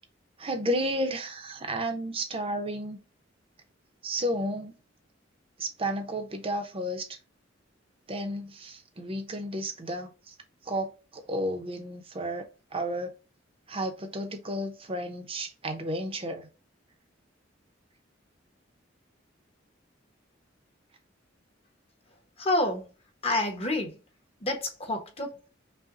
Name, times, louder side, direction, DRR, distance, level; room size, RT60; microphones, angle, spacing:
voice 1, 0.4-3.0 4.0-4.7 5.6-7.2 8.1-10.3 10.6-12.5 12.7-13.1 13.7-16.5, equal, 30° right, 0.8 m, -32 dB
voice 2, 22.4-22.8 23.2-24.0 24.4-25.4, left 2 dB, 30° left, 1.1 m, -28 dB
5.5 x 2.3 x 2.6 m
head